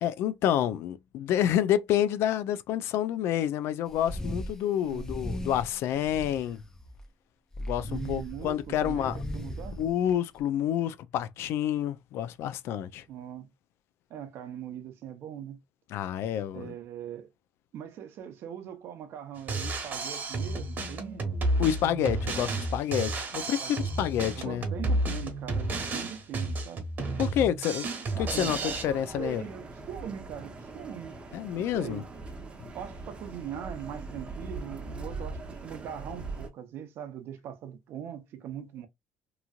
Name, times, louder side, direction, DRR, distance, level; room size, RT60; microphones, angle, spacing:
voice 1, 0.0-6.6 7.6-9.2 9.8-13.0 15.9-16.7 21.6-24.6 27.2-27.9 28.2-28.6 28.8-29.4 31.3-32.0, left 10 dB, 70° left, 0.4 m, -28 dB
sound 1, 3.9-4.5 4.9-7.0 7.5-10.4, equal, 15° left, 0.5 m, -38 dB
voice 2, 4.8-5.1 7.8-9.8 13.1-13.5 14.1-15.6 16.5-17.3 17.7-21.4 23.6-23.9 24.3-26.8 28.2-31.2 31.6-32.1 32.7-38.9, right 9 dB, 65° right, 0.8 m, -41 dB
Drum kit, 19.4-28.8, right 2 dB, 40° right, 1.2 m, -31 dB
sound 2, 28.0-36.5, right 3 dB, 25° right, 0.8 m, -41 dB
3.0 x 2.5 x 2.3 m
cardioid pair, 105°, 4 cm